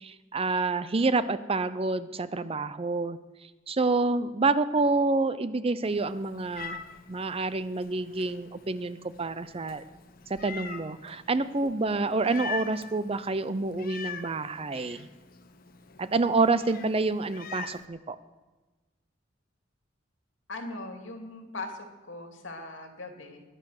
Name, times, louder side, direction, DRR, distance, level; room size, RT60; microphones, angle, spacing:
voice 1, 0.0-3.2 3.7-6.8 7.1-9.8 10.3-15.1 16.0-18.2, right 3 dB, 30° right, 14 dB, 0.6 m, -28 dB
Meow, 5.8-17.9, left 5 dB, 50° left, 1.2 m, -43 dB
voice 2, 20.5-23.4, left 2 dB, 80° left, 4 dB, 2.5 m, -40 dB
21.5 x 10.0 x 6.5 m, 1.2 s
head